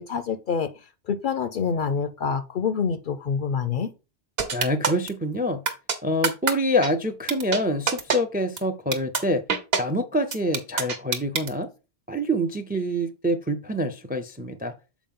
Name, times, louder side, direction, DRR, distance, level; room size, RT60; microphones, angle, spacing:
voice 1, 0.0-3.9, left 6 dB, 60° left, 0.6 m, -27 dB
sound 1, 4.4-5.1 5.7-6.0 6.2-6.5 6.8-6.9 7.3-7.6 7.9-8.2 8.6-8.7 8.9-9.2 9.5-9.8 10.3-11.5, right 5 dB, 60° right, 1.2 m, -24 dB
voice 2, 4.5-5.6 6.0-9.4 9.8-11.7 12.1-14.7, equal, 15° right, 0.4 m, -26 dB
7.2 x 4.6 x 3.7 m
omnidirectional pair, 1.2 m